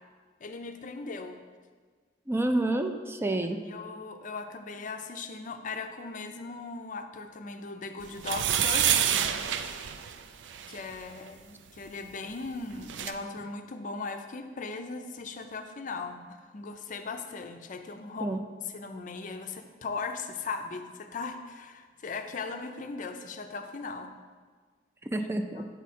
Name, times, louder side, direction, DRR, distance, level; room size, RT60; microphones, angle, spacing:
voice 1, 0.4-1.4 3.6-8.9 10.7-18.4 18.7-24.1 25.1-25.2 25.6-25.7, left 4 dB, 45° left, 7 dB, 0.5 m, -38 dB
voice 2, 2.3-3.6 18.2-18.4 25.1-25.6, right 1 dB, 15° right, 6 dB, 0.4 m, -28 dB
sound 1, 8.2-10.8 12.5-12.6 12.7-13.1, right 9 dB, 80° right, 0.4 m, -27 dB
8.1 x 4.7 x 4.3 m, 1.5 s
head